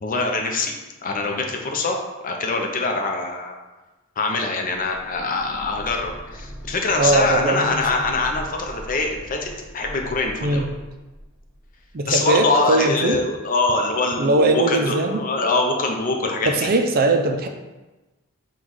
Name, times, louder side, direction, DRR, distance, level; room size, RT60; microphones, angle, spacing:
voice 1, 0.0-0.7 1.0-3.6 4.2-10.6 12.1-16.7, left 3 dB, 40° left, 2 dB, 0.6 m, -24 dB
sound 1, 4.8-12.5 12.7-12.8, equal, 15° right, 0.7 m, -40 dB
voice 2, 7.0-7.8 10.4-10.7 11.9-13.2 14.2-15.2 16.5-17.5, right 2 dB, 45° right, 5 dB, 0.4 m, -20 dB
4.0 x 2.3 x 4.6 m, 1.1 s
head